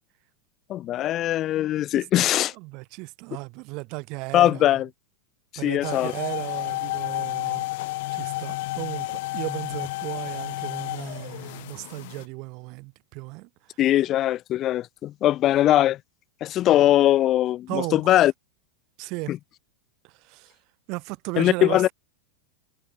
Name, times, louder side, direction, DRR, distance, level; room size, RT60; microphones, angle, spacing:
voice 1, 0.7-2.5 4.3-4.9 5.6-6.1 13.8-16.0 16.4-18.3 19.3-19.4 21.4-21.9, left 13 dB, 35° left, 0.6 m, -21 dB
voice 2, 1.9-4.7 5.6-7.7 8.1-13.5 17.7-18.2 19.0-19.3 20.0-20.5 20.9-21.9, right 27 dB, 40° right, 2.9 m, -35 dB
sound 1, 5.8-12.2, left 21 dB, 50° left, 7.8 m, -31 dB
figure-of-eight pair, 90°, 0 cm